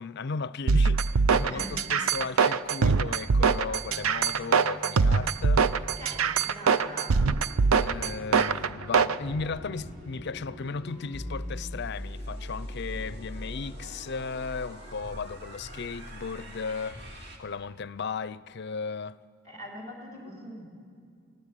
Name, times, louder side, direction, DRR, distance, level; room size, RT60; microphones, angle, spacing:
voice 1, 0.0-5.7 7.8-19.2, left 5 dB, 50° left, 0.5 m, -36 dB
sound 1, 0.7-9.2, right 5 dB, 70° right, 0.5 m, -23 dB
voice 2, 1.4-1.8 6.0-7.1 19.4-20.7, equal, 35° right, 4.3 m, -42 dB
sound 2, 3.9-11.8, left 1 dB, 5° right, 1.7 m, -50 dB
sound 3, 7.4-17.4, equal, 50° right, 2.5 m, -41 dB
22.0 x 17.0 x 9.8 m
head